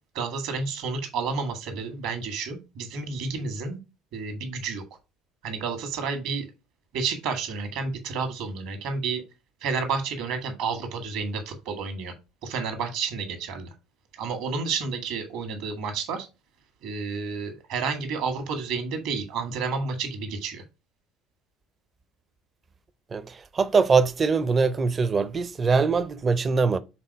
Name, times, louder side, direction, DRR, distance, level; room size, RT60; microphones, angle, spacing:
voice 1, 0.1-3.8 4.1-4.8 5.4-6.5 6.9-9.2 9.6-12.1 12.4-13.7 14.1-16.3 16.8-20.6, right 5 dB, 60° right, 1.7 m, -30 dB
voice 2, 23.1-26.8, right 4 dB, 30° right, 0.6 m, -22 dB
6.0 x 3.9 x 4.7 m
figure-of-eight pair, 60°, 0 cm